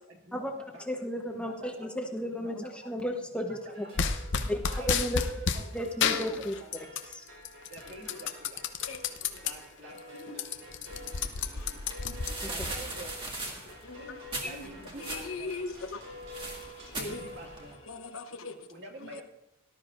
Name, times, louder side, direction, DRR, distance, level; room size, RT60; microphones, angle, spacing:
voice 1, 0.1-0.8 1.1-1.9 2.3-2.5 3.5-3.9 4.3-5.7 6.0-6.7 7.7-8.6 9.4-11.8 12.4-13.2 14.4-15.5 16.9-17.7 18.7-19.2, right 2 dB, 60° right, 2.2 m, -47 dB
voice 2, 0.8-3.8 4.5-4.6 4.9-5.2 5.7-6.5 14.4-14.5, equal, 5° left, 1.1 m, -33 dB
sound 1, 3.7-18.2, left 1 dB, 75° right, 4.2 m, -49 dB
sound 2, 4.0-5.6 6.0-7.1 7.5-9.5 10.0-10.1 10.3-12.7, left 6 dB, 60° left, 0.7 m, -30 dB
voice 3, 8.9-9.4 10.1-10.6 11.6-11.7 13.6-16.0 16.4-17.3 17.9-18.7 19.0-19.2, left 3 dB, 80° left, 1.1 m, -42 dB
sound 3, 10.9-17.7, right 2 dB, 25° right, 1.9 m, -41 dB
18.0 x 12.0 x 2.6 m
head